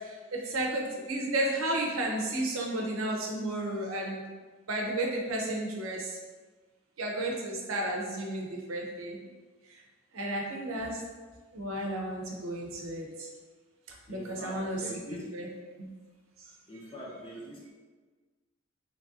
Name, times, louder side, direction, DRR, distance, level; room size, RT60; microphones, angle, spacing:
voice 1, 0.0-4.2 4.7-6.2 7.0-9.2 9.7-9.8 10.1-11.0 11.5-13.3 14.1-14.8 15.1-15.9 16.4-16.5, right 1 dB, 90° right, -1 dB, 0.7 m, -33 dB
voice 2, 14.1-15.3 16.7-17.7, equal, 25° left, -3 dB, 0.6 m, -43 dB
3.3 x 2.6 x 3.6 m, 1.4 s
head